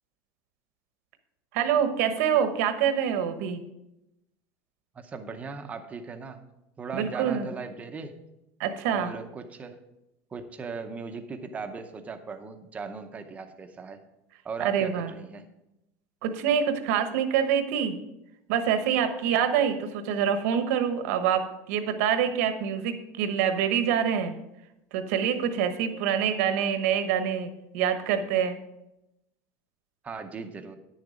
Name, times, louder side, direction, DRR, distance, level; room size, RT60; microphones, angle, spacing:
voice 1, 1.5-3.6 6.9-7.5 8.6-9.1 14.6-15.1 16.2-18.0 18.5-24.3 24.9-28.6, right 8 dB, 75° right, 8 dB, 1.0 m, -26 dB
voice 2, 4.9-6.4 6.8-8.2 8.9-9.8 10.3-14.0 14.4-15.5 30.0-30.8, right 4 dB, 15° right, 7 dB, 0.7 m, -38 dB
9.8 x 6.7 x 5.0 m, 0.90 s
cardioid pair, 165°, 8 cm